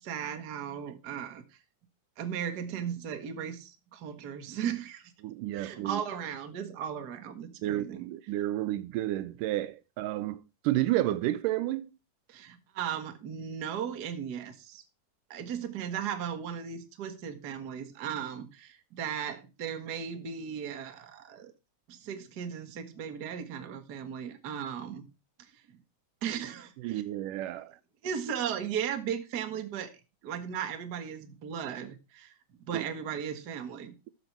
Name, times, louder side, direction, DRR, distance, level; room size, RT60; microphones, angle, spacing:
voice 1, 0.0-1.6 2.2-5.1 5.5-8.0 12.3-14.8 15.3-21.5 21.9-25.0 25.4-25.8 26.2-27.0 28.0-30.0 30.2-32.4 32.7-33.9, right 8 dB, 45° right, 1.3 m, -36 dB
voice 2, 5.2-6.0 7.6-11.9 26.8-27.8 32.7-32.8, right 14 dB, 80° right, 2.2 m, -31 dB
13.0 x 6.9 x 4.4 m
omnidirectional pair, 3.8 m